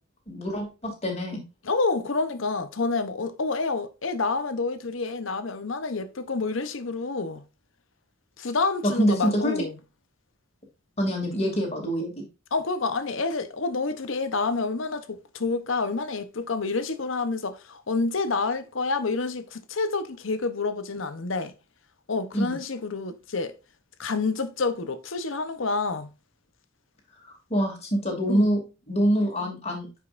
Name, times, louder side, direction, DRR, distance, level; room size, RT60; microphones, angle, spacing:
voice 1, 0.3-1.4 9.0-9.5 11.0-12.2 22.3-22.6 27.3-28.6 28.9-29.9, equal, 30° left, 2.7 m, -25 dB
voice 2, 1.6-7.4 8.4-9.8 12.5-21.5 22.1-23.5 24.0-26.1 28.3-28.5, left 3 dB, 65° left, 0.9 m, -28 dB
9.6 x 5.4 x 2.5 m
head